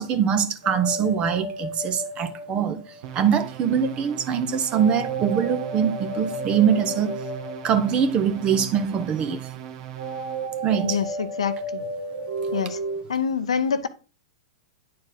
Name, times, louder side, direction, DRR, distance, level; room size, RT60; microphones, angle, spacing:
voice 1, 0.0-2.8 3.1-7.1 7.6-9.5 10.6-11.0 12.5-12.6, right 7 dB, 30° right, 1.0 m, -23 dB
sound 1, 0.6-3.3 4.7-8.6 10.0-13.0, right 2 dB, 85° right, 2.1 m, -33 dB
sound 2, 3.0-10.6, right 11 dB, 55° right, 1.0 m, -39 dB
voice 2, 10.8-11.8 12.5-12.8 13.1-13.9, left 6 dB, 75° left, 0.7 m, -26 dB
9.5 x 4.4 x 3.9 m
figure-of-eight pair, 100°, 3 cm